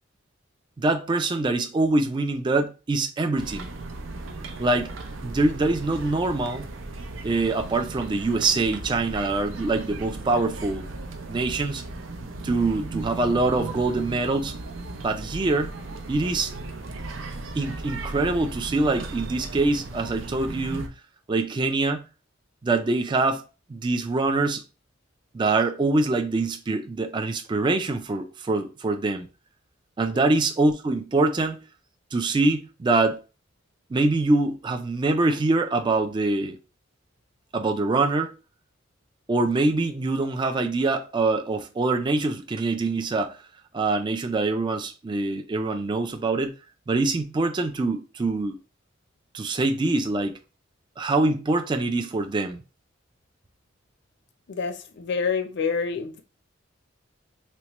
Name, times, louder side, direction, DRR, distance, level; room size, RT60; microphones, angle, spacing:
voice 1, 0.8-3.7 4.6-4.9 5.2-6.7 7.2-10.9 11.3-11.8 12.4-14.5 15.0-15.7 16.1-16.5 17.6-20.9 21.3-22.0 22.6-23.4 23.7-24.6 25.3-29.3 30.0-31.6 32.1-33.2 33.9-36.6 37.5-38.3 39.3-43.4 43.7-46.5 46.9-48.6 49.3-50.4 51.0-52.6, right 3 dB, 25° right, 0.3 m, -24 dB
sound 1, 3.4-20.9, right 2 dB, 70° right, 0.5 m, -36 dB
voice 2, 54.5-56.2, left 5 dB, 60° left, 0.5 m, -28 dB
4.2 x 2.1 x 2.9 m
head